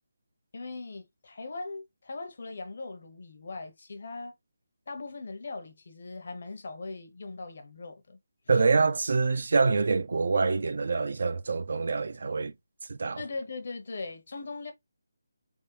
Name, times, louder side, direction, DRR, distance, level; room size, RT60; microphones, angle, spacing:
voice 1, 0.5-4.3 4.9-8.2 8.5-8.6 13.1-14.7, left 3 dB, 40° left, 0.8 m, -40 dB
voice 2, 8.5-12.5 12.9-13.2, right 4 dB, 45° right, 0.4 m, -25 dB
4.0 x 3.6 x 2.7 m
hypercardioid pair, 180°, 0 cm